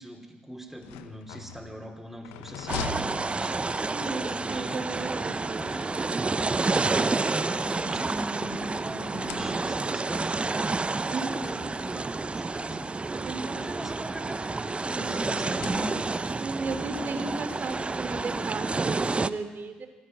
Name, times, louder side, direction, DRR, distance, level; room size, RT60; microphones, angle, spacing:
voice 1, 0.0-4.8 5.4-5.9 6.3-16.3 16.7-17.3, equal, 5° right, 2 dB, 4.9 m, -41 dB
sound 1, 0.7-4.0 5.3-6.5 7.3-8.7 9.1-10.0 10.9-11.0 11.4-11.5 12.6-14.0 15.2-16.4, left 7 dB, 80° left, 0.9 m, -43 dB
sound 2, 2.7-19.3, right 3 dB, 30° right, 0.9 m, -29 dB
voice 2, 3.9-5.7 11.1-11.7 13.1-13.8 16.4-19.9, right 3 dB, 50° right, 7 dB, 2.9 m, -35 dB
26.0 x 10.0 x 9.9 m, 1.3 s
hypercardioid pair, 45°, 4 cm